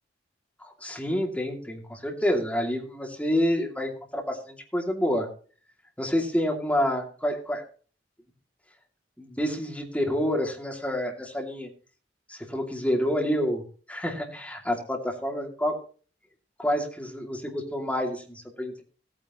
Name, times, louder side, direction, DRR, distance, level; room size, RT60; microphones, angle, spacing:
voice 1, 0.6-5.3 6.0-7.6 9.2-11.7 12.3-15.8 16.6-18.8, equal, 10° left, 1 dB, 2.6 m, -28 dB
16.0 x 9.5 x 3.1 m, 0.38 s
head